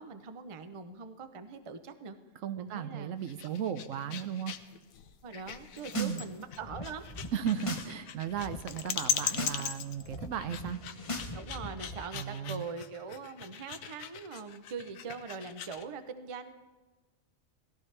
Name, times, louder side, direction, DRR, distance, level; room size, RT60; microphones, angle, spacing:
voice 1, 0.0-2.2 2.6-3.1 5.2-7.3 11.3-16.6, right 5 dB, 35° right, 9 dB, 0.5 m, -42 dB
voice 2, 2.4-4.5 5.9-6.2 7.3-10.8 12.1-12.6, right 9 dB, 75° right, 11 dB, 1.0 m, -35 dB
sound 1, 3.2-15.9, left 8 dB, 90° left, 1.1 m, -39 dB
sound 2, 5.6-6.2 6.5-7.9 8.2-8.6 9.0-9.6 9.9-12.0, left 2 dB, 30° left, 0.9 m, -40 dB
18.0 x 14.5 x 3.3 m, 1.3 s
omnidirectional pair, 1.4 m